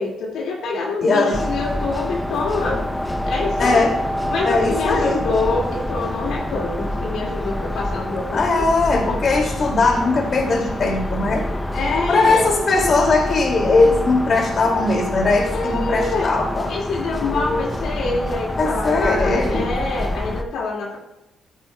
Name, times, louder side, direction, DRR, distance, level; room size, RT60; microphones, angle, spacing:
voice 1, 0.0-2.8 3.2-3.9 4.3-8.7 9.1-9.2 11.7-12.5 15.5-16.3 16.7-21.0, left 3 dB, 80° left, -2 dB, 2.1 m, -26 dB
voice 2, 1.0-1.4 2.6-2.8 3.6-4.0 4.4-5.2 8.3-11.5 12.1-16.7 17.2-17.7 18.6-19.7, left 3 dB, 50° left, 0 dB, 2.4 m, -19 dB
sound 1, 1.3-20.4, left 1 dB, 10° left, 0.6 m, -26 dB
13.5 x 9.1 x 2.3 m, 0.91 s
cardioid pair, 90°, 0 cm